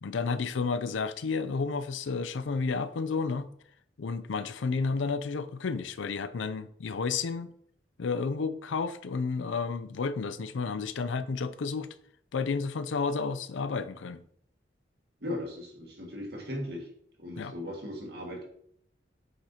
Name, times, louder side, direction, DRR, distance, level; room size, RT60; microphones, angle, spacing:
voice 1, 0.0-3.5 4.0-7.5 8.0-11.9 12.3-14.2 17.4-17.5, left 4 dB, 85° left, 0.5 m, -31 dB
voice 2, 15.2-16.9 17.2-18.4, left 1 dB, 55° right, 1.8 m, -37 dB
8.0 x 6.1 x 2.8 m
head